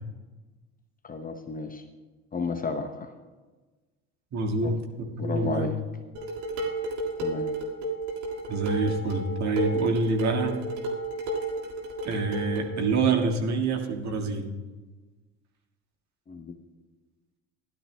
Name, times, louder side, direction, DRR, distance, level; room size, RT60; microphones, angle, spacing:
voice 1, 1.0-1.8 2.3-3.1 4.6-4.7 5.2-5.8 7.2-7.5 16.3-16.5, left 4 dB, 20° left, 6 dB, 0.8 m, -32 dB
voice 2, 4.3-4.8 5.1-5.7 8.5-10.6 12.0-14.4, right 3 dB, 45° right, 2 dB, 1.7 m, -26 dB
Dishes pots and pans, 6.2-12.8, right 2 dB, 65° right, 2.0 m, -32 dB
16.5 x 11.5 x 2.2 m, 1.3 s
hypercardioid pair, 65°, 39 cm